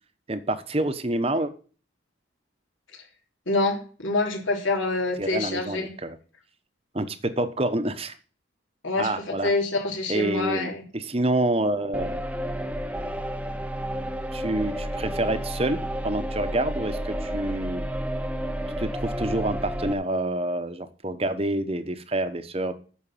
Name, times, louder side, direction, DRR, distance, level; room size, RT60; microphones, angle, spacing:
voice 1, 0.3-1.5 5.2-6.2 6.9-8.1 9.0-9.5 10.1-12.2 14.3-17.9 18.8-22.7, right 1 dB, 30° right, 10 dB, 1.0 m, -27 dB
voice 2, 3.5-5.9 8.8-10.8, left 2 dB, 75° left, 0 dB, 3.3 m, -26 dB
sound 1, 11.9-19.9, equal, 5° right, 0.7 m, -31 dB
9.2 x 6.7 x 8.5 m, 0.40 s
head